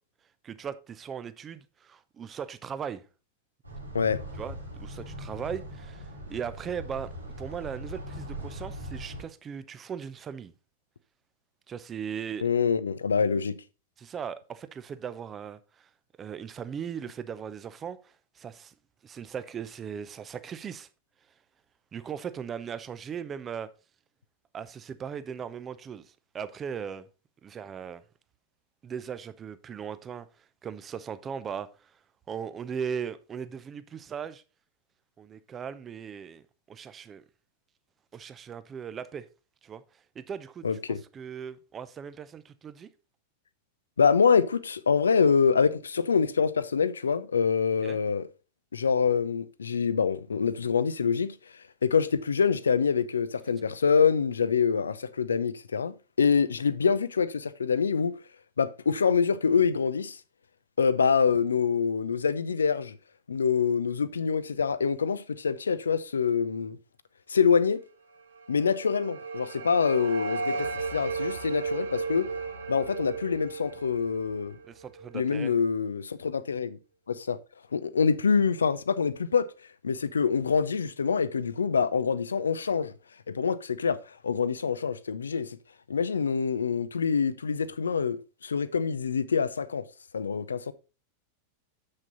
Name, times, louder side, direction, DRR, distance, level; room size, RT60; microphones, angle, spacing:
voice 1, 0.4-3.0 4.4-4.5 4.8-7.1 7.4-10.5 11.7-12.4 14.0-15.9 16.2-18.7 19.0-20.9 21.9-23.7 24.5-27.1 27.4-28.0 28.8-30.3 30.6-32.0 32.3-34.4 35.2-37.2 38.1-39.3 39.6-42.9 47.8-48.0 74.7-75.5, right 7 dB, 25° right, 0.7 m, -38 dB
sound 1, 3.6-9.2, equal, 85° right, 2.5 m, -40 dB
voice 2, 12.4-13.6 40.6-41.0 44.0-48.3 48.7-51.4 51.8-58.2 58.6-60.2 60.8-63.0 63.3-66.8 67.3-67.8 68.5-72.3 72.7-74.6 75.1-76.8 77.1-77.4 77.7-79.5 79.8-82.9 83.3-85.6 85.9-89.8 90.1-90.7, left 6 dB, 70° left, 0.5 m, -25 dB
sound 2, 68.3-75.4, right 4 dB, 65° right, 1.3 m, -35 dB
7.5 x 6.5 x 3.9 m
figure-of-eight pair, 90°, 0 cm